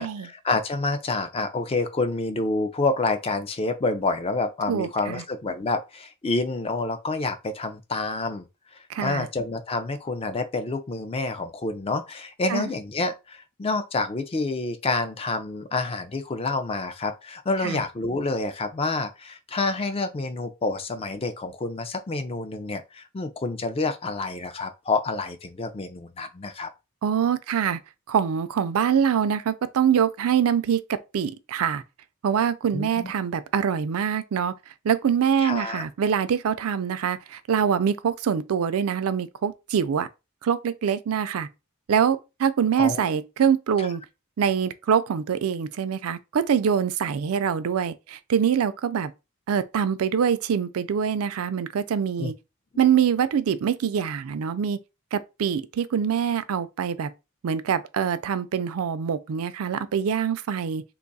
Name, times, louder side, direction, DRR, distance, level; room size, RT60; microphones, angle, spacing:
voice 1, 0.0-8.4 9.0-26.7 32.7-33.1 35.4-35.8 42.8-43.1 52.2-52.3, left 3 dB, 25° left, 0.4 m, -28 dB
voice 2, 4.7-5.2 8.9-9.3 12.5-12.7 17.6-17.8 27.0-27.8 28.1-31.8 32.2-34.5 34.8-40.1 40.4-41.5 41.9-44.0 44.4-49.1 49.5-52.3 52.8-54.8 55.1-57.1 57.4-60.8, right 7 dB, 75° right, 0.4 m, -24 dB
3.0 x 2.3 x 3.9 m
head